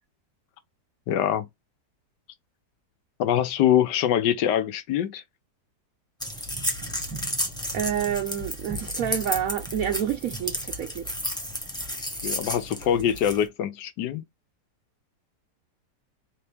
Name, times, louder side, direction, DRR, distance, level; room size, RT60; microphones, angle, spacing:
voice 1, 1.1-1.5 3.2-5.2 12.2-14.2, left 10 dB, 80° left, 1.4 m, -24 dB
sound 1, 6.2-13.4, equal, 5° left, 0.9 m, -32 dB
voice 2, 7.7-11.1, right 9 dB, 65° right, 0.9 m, -28 dB
4.2 x 3.0 x 3.4 m
omnidirectional pair, 1.8 m